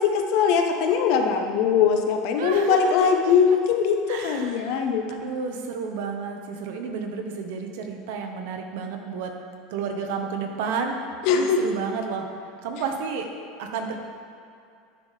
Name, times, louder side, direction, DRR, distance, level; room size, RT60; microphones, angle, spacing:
voice 1, 0.0-5.0 11.3-11.6, left 6 dB, 60° left, 4 dB, 0.9 m, -21 dB
voice 2, 2.4-3.3 4.1-9.3 9.7-11.0 11.3-12.2 12.6-13.3 13.6-14.0, right 5 dB, 75° right, 3 dB, 1.1 m, -31 dB
10.5 x 3.8 x 6.4 m, 2.5 s
supercardioid pair, 135°, 0 cm